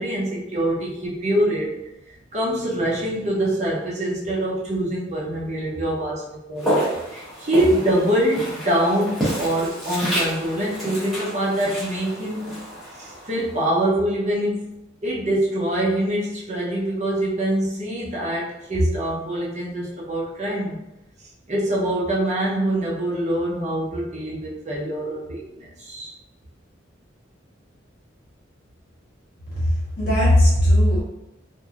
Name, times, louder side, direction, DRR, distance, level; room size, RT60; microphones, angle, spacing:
voice 1, 0.0-1.7 2.3-6.8 7.1-12.4 13.0-14.6 15.0-20.8 21.5-26.1, right 1 dB, 35° right, -5 dB, 0.7 m, -24 dB
Walk footsteps, 6.6-13.7, equal, ahead, 1.0 m, -29 dB
voice 2, 29.5-31.0, left 1 dB, 50° left, -8 dB, 1.3 m, -18 dB
3.1 x 2.6 x 2.4 m, 0.92 s
head